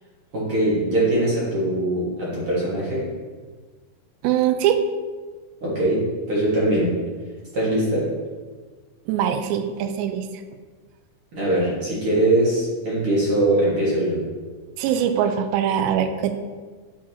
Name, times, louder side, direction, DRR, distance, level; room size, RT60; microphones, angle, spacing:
voice 1, 0.3-3.1 5.6-6.9 7.5-8.1 11.3-14.2, right 1 dB, 55° right, -7 dB, 1.6 m, -22 dB
voice 2, 4.2-4.8 9.1-10.3 14.8-16.5, right 9 dB, 90° right, 8 dB, 2.8 m, -22 dB
10.0 x 4.8 x 2.8 m, 1.4 s
omnidirectional pair, 4.9 m